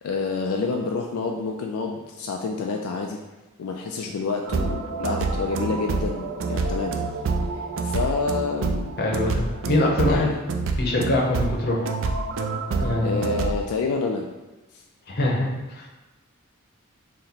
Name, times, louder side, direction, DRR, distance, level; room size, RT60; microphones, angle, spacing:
voice 1, 0.0-3.2 3.6-6.9 7.8-8.9 10.0-10.4 13.0-14.2 14.7-14.8, left 4 dB, 80° left, 1 dB, 0.4 m, -28 dB
sound 1, 4.5-13.5, right 3 dB, 60° right, 0.4 m, -27 dB
voice 2, 9.0-10.3 10.8-11.8 12.8-13.2 15.1-15.9, left 1 dB, 45° left, -1 dB, 0.7 m, -23 dB
4.2 x 2.1 x 3.9 m, 1.1 s
head